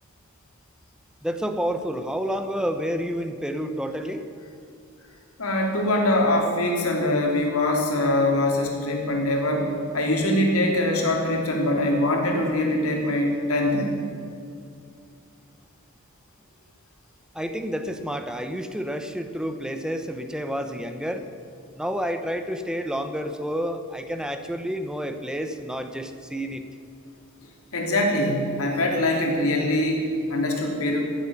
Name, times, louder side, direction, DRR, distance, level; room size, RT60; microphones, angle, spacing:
voice 1, 1.2-4.3 17.3-21.2 21.8-26.6, equal, 5° right, 8 dB, 0.9 m, -29 dB
voice 2, 5.4-14.0 27.7-31.0, left 1 dB, 90° left, 1 dB, 3.2 m, -23 dB
16.0 x 8.2 x 9.9 m, 2.4 s
head